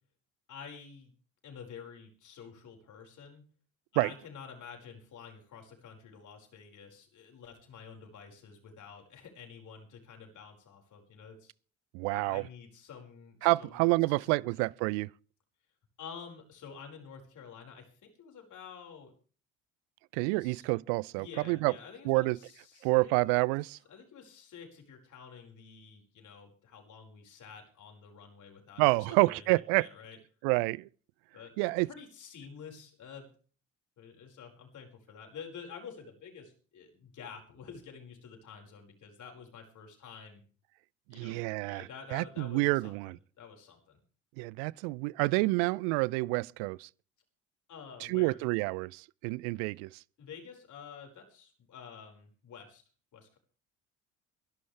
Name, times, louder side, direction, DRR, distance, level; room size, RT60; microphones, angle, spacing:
voice 1, 0.5-1.1 1.4-3.4 3.9-11.5 12.1-13.9 14.1-14.5 16.0-19.1 20.4-20.6 21.1-23.3 23.9-30.2 31.3-33.3 34.0-40.4 41.1-41.4 41.6-43.0 43.4-44.0 47.7-48.4 50.2-52.8 53.1-53.4, left 6 dB, 50° left, 5.4 m, -49 dB
voice 2, 11.9-12.4 13.4-15.1 20.1-21.7 22.0-22.4 22.8-23.8 28.8-29.9 30.4-30.9 31.6-31.9 41.1-43.2 44.4-46.9 48.0-49.9, right 25 dB, 65° right, 0.6 m, -28 dB
23.0 x 11.5 x 3.4 m
hypercardioid pair, 60°, 37 cm